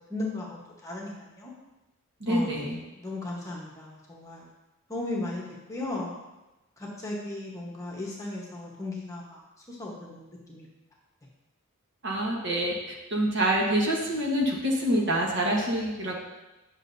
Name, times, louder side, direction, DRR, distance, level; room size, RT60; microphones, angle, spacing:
voice 1, 0.1-1.5 2.3-4.5 4.9-5.4 5.7-6.1 6.8-9.4 9.7-10.7, left 2 dB, 15° left, -3 dB, 1.2 m, -36 dB
voice 2, 2.2-2.8 12.0-16.2, right 1 dB, 55° right, -1 dB, 1.3 m, -26 dB
9.8 x 6.1 x 2.7 m, 1.0 s
head